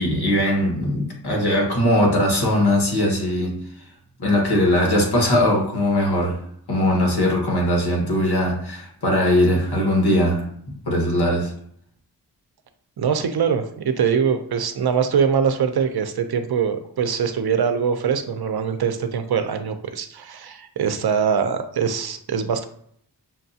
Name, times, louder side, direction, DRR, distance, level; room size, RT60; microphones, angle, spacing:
voice 1, 0.0-3.6 4.2-6.4 6.7-11.5, left 1 dB, 65° left, 1.4 m, -20 dB
voice 2, 13.0-22.6, right 7 dB, 65° right, 0.6 m, -23 dB
5.8 x 2.3 x 2.7 m
wide cardioid pair, 65°, 42 cm